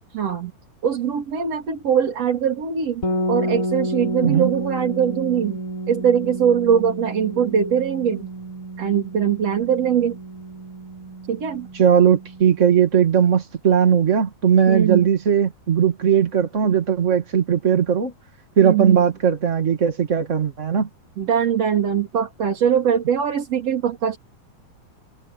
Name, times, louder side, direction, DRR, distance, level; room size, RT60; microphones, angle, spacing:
voice 1, 0.1-0.5 0.8-5.6 5.9-8.3 8.8-10.2 11.3-11.7 14.7-15.1 18.6-19.0 21.2-24.2, right 8 dB, 40° right, 4.1 m, -21 dB
sound 1, 3.0-12.8, right 1 dB, 20° left, 8.4 m, -30 dB
voice 2, 4.2-4.5 11.7-18.1 18.6-20.9, right 8 dB, 80° right, 0.6 m, -18 dB
omnidirectional pair, 4.4 m